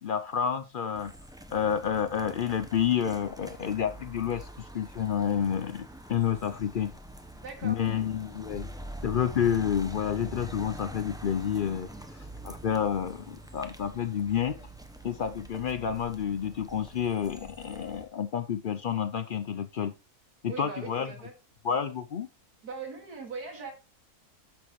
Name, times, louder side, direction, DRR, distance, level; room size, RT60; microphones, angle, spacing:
voice 1, 0.0-1.1 1.5-6.9 7.6-8.7 9.0-11.9 12.4-14.6 15.0-19.9 20.4-21.1 21.6-22.3, left 8 dB, 70° left, 11 dB, 0.4 m, -29 dB
sound 1, 1.0-18.0, right 1 dB, 5° right, 0.6 m, -45 dB
voice 2, 7.3-7.8 11.9-12.1 20.5-21.3 22.6-23.7, right 4 dB, 85° right, 3 dB, 2.7 m, -40 dB
13.0 x 6.1 x 3.1 m, 0.27 s
omnidirectional pair, 1.6 m